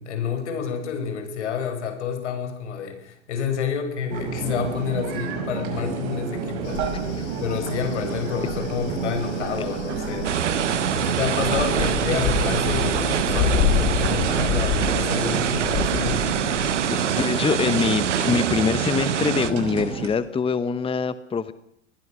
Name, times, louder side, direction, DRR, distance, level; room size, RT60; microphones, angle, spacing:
voice 1, 0.0-6.8 7.4-10.3 10.7-16.3, left 7 dB, 75° left, 7 dB, 5.4 m, -29 dB
sound 1, 4.1-20.1, right 5 dB, 60° right, 6.0 m, -30 dB
sound 2, 6.6-16.7, left 9 dB, 55° left, 3.1 m, -29 dB
sound 3, 10.2-19.5, right 9 dB, 85° right, 1.2 m, -25 dB
voice 2, 16.9-21.5, left 5 dB, 15° left, 15 dB, 1.0 m, -24 dB
24.0 x 20.0 x 6.3 m, 0.77 s
hypercardioid pair, 90°, 35 cm